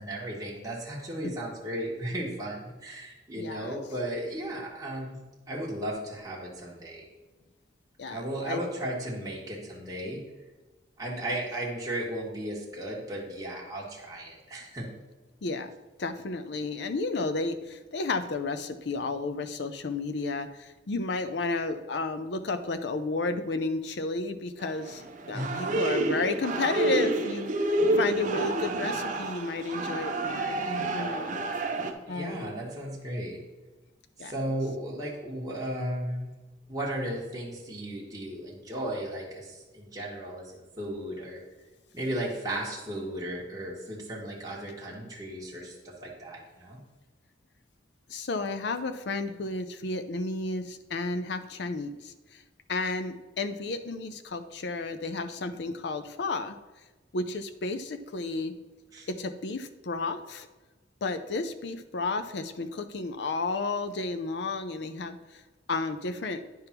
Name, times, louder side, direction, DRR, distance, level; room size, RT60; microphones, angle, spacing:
voice 1, 0.0-5.2 5.5-7.0 8.1-10.2 11.0-14.9 25.3-25.8 32.1-33.4 34.2-36.3 36.7-41.4 41.9-46.8 58.9-59.1, right 1 dB, 20° right, -4 dB, 1.3 m, -35 dB
voice 2, 3.4-3.8 8.0-8.6 15.4-15.7 16.0-27.5 28.0-31.5 32.1-32.6 34.2-34.3 48.1-52.4 52.7-56.6 57.1-58.6 59.1-60.5 61.0-65.4 65.7-66.4, left 3 dB, 65° left, 10 dB, 0.5 m, -32 dB
sound 1, 24.6-31.9, right 2 dB, 45° right, 0.6 m, -29 dB
9.5 x 3.5 x 5.8 m, 1.2 s
head